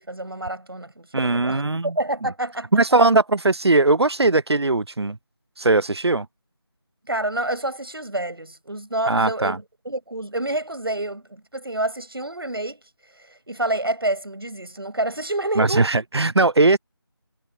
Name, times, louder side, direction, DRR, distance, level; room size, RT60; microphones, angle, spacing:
voice 1, 0.0-2.7 7.1-12.8 13.5-15.9, right 1 dB, 65° right, 7.0 m, -28 dB
voice 2, 1.1-2.3 2.7-5.2 5.6-6.3 9.1-9.6 15.5-16.8, right 2 dB, 90° right, 0.6 m, -19 dB
figure-of-eight pair, 170°, 13 cm